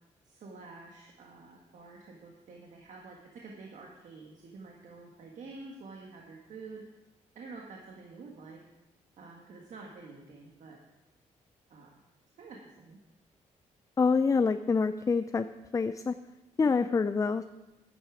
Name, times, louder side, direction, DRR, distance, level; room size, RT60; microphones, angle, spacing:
voice 1, 0.2-6.8 7.3-8.6 9.2-10.8 11.7-11.9 12.4-13.0 16.6-16.9, right 3 dB, 75° right, 0 dB, 1.6 m, -48 dB
voice 2, 14.0-15.5 15.7-16.1 16.6-17.4, left 4 dB, 25° left, 11 dB, 0.4 m, -26 dB
10.5 x 9.8 x 5.0 m, 1.0 s
cardioid pair, 85°, 13 cm